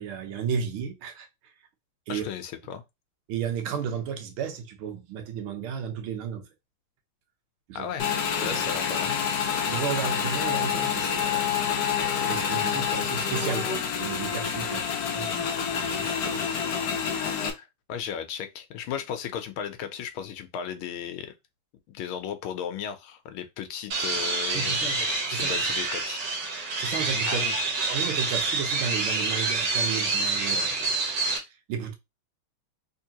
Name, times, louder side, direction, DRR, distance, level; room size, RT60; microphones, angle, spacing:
voice 1, 0.0-1.5 2.1-2.3 3.3-6.5 7.7-7.9 8.4-8.7 9.7-11.6 12.2-16.5 24.5-25.6 26.8-27.4 27.9-31.1 31.4-31.9, right 7 dB, 90° right, 1.7 m, -34 dB
voice 2, 2.1-2.8 7.7-9.2 12.4-12.7 17.5-21.3 21.9-24.9 25.3-26.2 27.3-27.5, left 8 dB, 80° left, 1.5 m, -35 dB
Motorcycle / Engine, 8.0-17.5, left 7 dB, 65° left, 1.0 m, -27 dB
sound 1, 23.9-31.4, right 3 dB, 60° right, 1.6 m, -27 dB
3.5 x 3.3 x 2.8 m
omnidirectional pair, 2.3 m